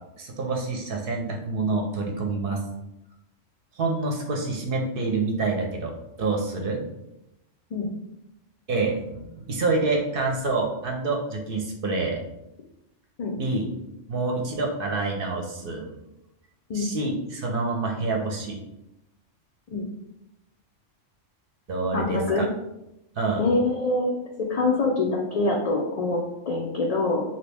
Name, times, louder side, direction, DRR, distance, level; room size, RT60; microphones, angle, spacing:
voice 1, 0.2-2.6 3.8-5.9 6.2-6.8 8.7-12.2 13.4-13.7 14.1-15.9 16.7-18.6 21.7-22.5 23.1-23.4, right 3 dB, 60° right, 1 dB, 0.7 m, -27 dB
voice 2, 21.9-22.4 23.4-24.1 24.4-27.2, left 2 dB, 85° left, -2 dB, 0.3 m, -25 dB
2.9 x 2.6 x 3.3 m, 0.89 s
omnidirectional pair, 1.2 m